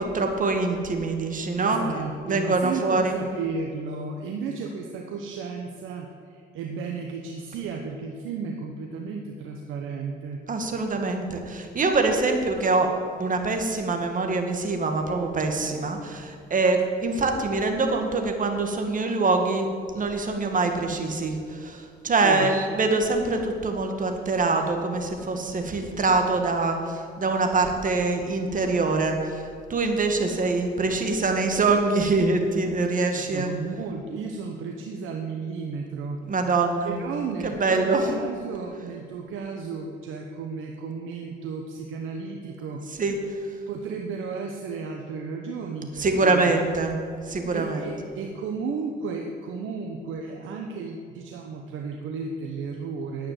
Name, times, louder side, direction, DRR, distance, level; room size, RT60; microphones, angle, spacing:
voice 1, 0.0-1.8 2.2-3.2 10.5-12.9 13.2-19.7 19.9-33.5 36.3-36.9 37.4-38.1 43.0-43.2 46.0-46.9 47.3-47.9, right 3 dB, 40° right, 4 dB, 1.9 m, -24 dB
voice 2, 1.6-10.4 22.2-22.5 33.0-36.2 36.8-42.8 43.7-46.5 47.5-53.3, right 5 dB, 85° right, 2 dB, 1.1 m, -33 dB
10.5 x 8.8 x 7.8 m, 2.3 s
cardioid pair, 90°, 20 cm